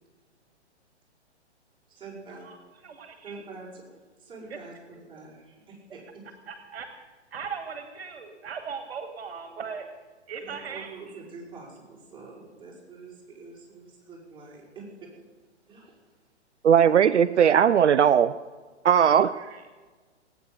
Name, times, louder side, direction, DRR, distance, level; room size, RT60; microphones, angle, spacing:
voice 1, 1.9-2.5 3.2-3.8 4.2-6.2 10.4-15.1 15.7-16.0, right 3 dB, 15° right, -5 dB, 6.1 m, -45 dB
voice 2, 2.8-3.4 6.5-6.9 7.3-9.9 10.3-10.9 19.3-19.6, right 6 dB, 60° right, 7 dB, 2.0 m, -38 dB
voice 3, 16.6-18.3 18.8-19.3, right 8 dB, 80° right, 13 dB, 0.6 m, -18 dB
19.0 x 9.4 x 8.0 m, 1.4 s
figure-of-eight pair, 125°, 35 cm